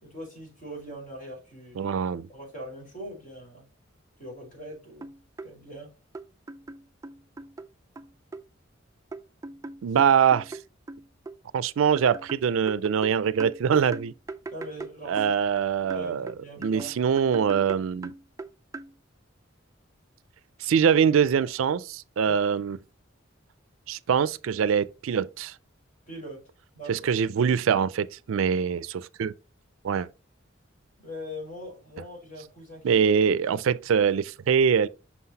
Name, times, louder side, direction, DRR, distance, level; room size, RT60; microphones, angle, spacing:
voice 1, 0.0-1.9 2.3-3.7 4.2-5.1 5.4-5.9 9.9-10.0 14.5-15.3 15.8-17.0 26.1-27.1 31.0-33.1, equal, 40° left, 3.6 m, -42 dB
voice 2, 1.8-2.3 9.8-10.6 11.5-14.1 15.1-16.3 16.6-18.1 20.6-22.8 23.9-25.5 26.9-29.3 29.8-30.1 32.8-34.9, right 7 dB, 85° right, 0.4 m, -23 dB
sound 1, 4.7-4.8 5.0-5.5 6.1-7.7 8.0-8.5 9.1-11.4 12.0-15.6 15.9-18.9, right 2 dB, 15° right, 0.3 m, -40 dB
6.0 x 5.7 x 2.7 m
head